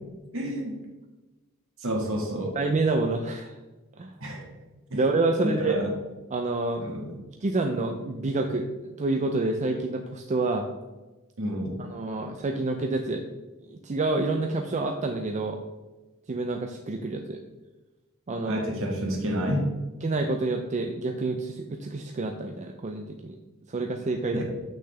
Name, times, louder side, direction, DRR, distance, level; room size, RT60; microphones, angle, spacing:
voice 1, 0.3-0.7 1.8-2.6 4.2-4.4 4.9-5.0 5.4-5.9 6.8-7.2 11.4-11.8 18.4-19.7 24.3-24.4, equal, 65° right, 1 dB, 1.7 m, -29 dB
voice 2, 2.6-3.6 4.0-4.1 4.9-5.8 6.3-6.9 7.4-10.7 11.9-13.2 13.7-15.6 16.3-17.4 18.3-18.6 20.0-23.4 23.7-24.4, right 2 dB, 30° right, 4 dB, 0.5 m, -28 dB
7.7 x 6.4 x 3.3 m, 1.1 s
head